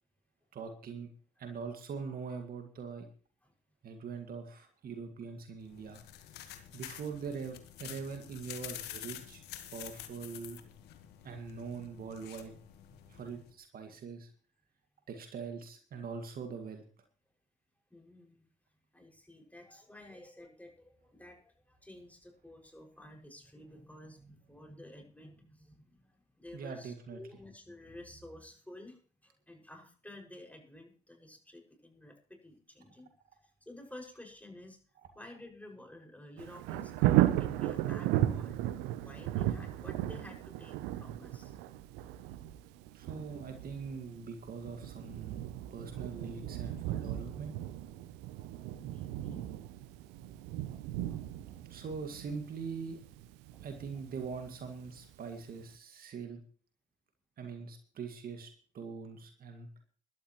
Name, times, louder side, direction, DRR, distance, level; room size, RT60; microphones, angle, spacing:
voice 1, 0.5-1.1 1.4-3.1 3.8-6.0 6.7-9.4 9.7-10.6 11.2-12.5 13.1-14.3 15.1-16.8 26.5-27.2 42.9-47.5 51.7-53.0 53.6-56.4 57.4-58.5 58.7-59.7, right 5 dB, 60° right, 5 dB, 2.0 m, -42 dB
sound 1, 5.6-13.5, left 12 dB, 75° left, 1.4 m, -48 dB
voice 2, 12.9-13.4 17.9-18.5 18.9-33.1 33.7-34.8 35.1-38.6 39.0-41.6 48.7-49.5 50.2-50.3 50.7-51.6 53.5-53.6 53.9-54.0, left 1 dB, 10° left, 0 dB, 6.0 m, -52 dB
Thunder, 36.4-55.1 55.6-55.7, right 14 dB, 80° right, 0.7 m, -35 dB
22.0 x 12.5 x 3.1 m, 0.40 s
hypercardioid pair, 40°, 17 cm